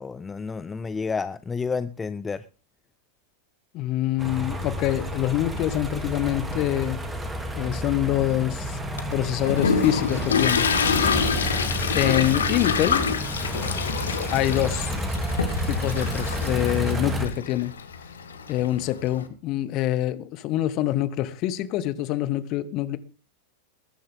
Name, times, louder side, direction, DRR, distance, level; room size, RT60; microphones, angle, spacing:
voice 1, 0.0-2.4, left 5 dB, 15° left, 0.6 m, -30 dB
voice 2, 3.7-7.0 7.5-8.8 9.1-10.7 11.9-13.0 14.3-15.0 15.7-17.7 18.5-23.0, left 14 dB, 40° left, 1.2 m, -25 dB
sound 1, 4.2-17.3, equal, 10° right, 2.5 m, -30 dB
Toilet flush, 9.0-19.2, left 6 dB, 70° left, 1.7 m, -27 dB
20.0 x 10.5 x 3.5 m
figure-of-eight pair, 90°, 0 cm